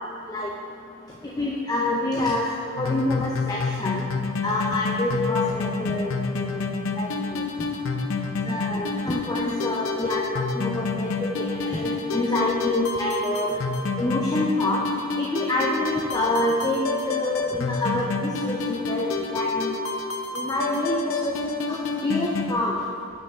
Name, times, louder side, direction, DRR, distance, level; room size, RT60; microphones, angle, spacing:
voice 1, 1.4-2.5 2.8-4.1 4.4-6.6 7.0-7.4 8.5-13.6 14.0-14.8 15.2-18.1 18.4-19.8 20.3-22.8, left 1 dB, 15° left, -2 dB, 0.5 m, -27 dB
sound 1, 2.8-22.5, left 4 dB, 60° left, 0.6 m, -29 dB
6.4 x 5.5 x 5.6 m, 2.3 s
head